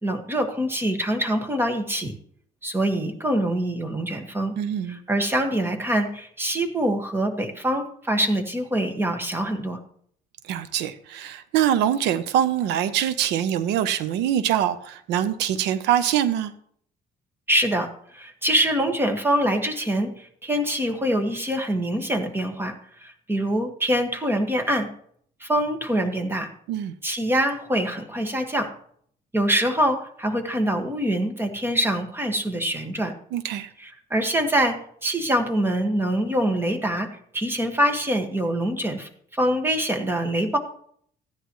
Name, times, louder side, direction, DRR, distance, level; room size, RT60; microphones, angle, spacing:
voice 1, 0.0-2.1 2.6-4.5 4.9-9.8 17.5-24.9 25.4-26.5 27.0-28.7 29.3-33.1 33.8-34.8 35.0-37.1 37.3-40.6, right 1 dB, 15° right, 5 dB, 1.7 m, -24 dB
voice 2, 4.6-5.0 10.5-16.5 26.7-26.9 33.3-33.7, right 10 dB, 90° right, 13 dB, 0.8 m, -24 dB
15.5 x 10.5 x 3.1 m, 0.63 s
cardioid pair, 110°, 17 cm